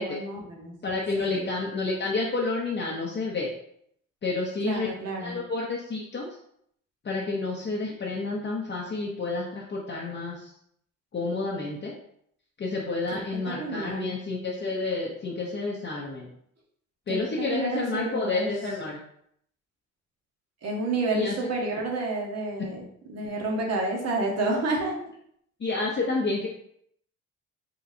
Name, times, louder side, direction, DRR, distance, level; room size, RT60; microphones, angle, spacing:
voice 1, 0.0-0.7 1.2-1.4 4.6-5.4 13.1-13.2 13.6-14.2 17.1-18.5 20.6-24.9, right 2 dB, 55° right, -1 dB, 1.3 m, -30 dB
voice 2, 0.8-3.5 4.2-4.9 5.2-6.3 7.0-10.5 11.1-11.9 12.6-16.3 17.1-19.0 21.1-21.3 25.6-26.5, left 3 dB, 35° left, -3 dB, 0.8 m, -30 dB
4.3 x 3.7 x 2.7 m, 0.70 s
cardioid pair, 90°, 30 cm